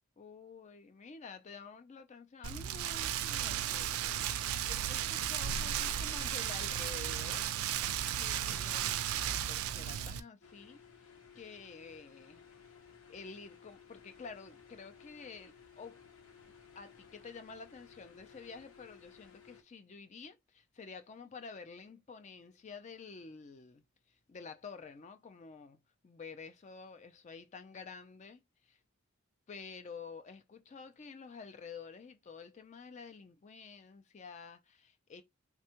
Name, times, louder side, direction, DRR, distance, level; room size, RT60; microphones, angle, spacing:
voice 1, 0.2-4.4 4.7-7.5 8.1-11.1 11.3-12.4 13.1-16.0 16.8-23.8 24.1-28.8 29.5-35.2, left 5 dB, 35° left, 0.4 m, -50 dB
Rain, 2.4-10.2, right 10 dB, 80° right, 0.3 m, -35 dB
sound 1, 10.4-19.6, left 6 dB, 70° left, 0.8 m, -58 dB
3.4 x 2.2 x 2.8 m
head